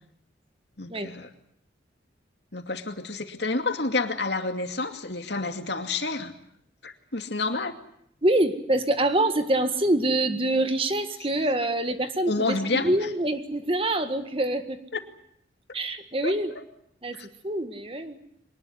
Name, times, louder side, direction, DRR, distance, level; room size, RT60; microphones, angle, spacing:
voice 1, 0.8-1.3 2.5-6.3 6.8-7.7 12.3-12.9 14.9-15.0 16.2-16.3 17.1-17.3, left 3 dB, 70° left, 6 dB, 2.5 m, -29 dB
voice 2, 8.2-14.8 15.7-16.5 17.0-18.2, right 1 dB, 30° right, 8 dB, 1.8 m, -25 dB
23.0 x 20.0 x 9.8 m, 0.70 s
head